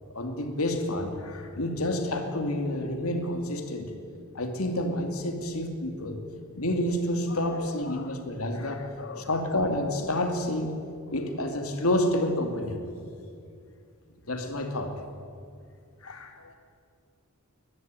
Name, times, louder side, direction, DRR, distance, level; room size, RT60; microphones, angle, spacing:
voice 1, 0.1-3.9 4.3-6.2 6.6-8.9 9.2-10.8 11.1-12.8 14.3-15.0 16.0-16.4, left 1 dB, 85° left, 5 dB, 2.5 m, -29 dB
voice 2, 7.3-8.2 8.8-9.3 16.0-16.6, left 3 dB, 60° left, 6 dB, 1.0 m, -42 dB
21.5 x 14.0 x 9.1 m, 2.4 s
head